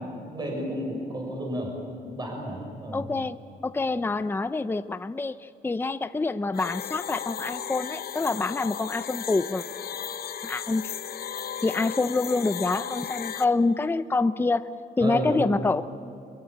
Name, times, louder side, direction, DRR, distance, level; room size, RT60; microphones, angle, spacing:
voice 1, 0.0-1.7 2.0-3.1 15.0-15.4, equal, 25° right, 0 dB, 6.9 m, -32 dB
voice 2, 2.9-9.6 10.4-10.9 11.6-14.7 15.0-15.8, left 3 dB, 15° left, 12 dB, 0.6 m, -26 dB
sound 1, 6.5-13.4, left 9 dB, 65° left, 1.0 m, -35 dB
23.5 x 22.0 x 8.8 m, 2.8 s
cardioid pair, 130°, 17 cm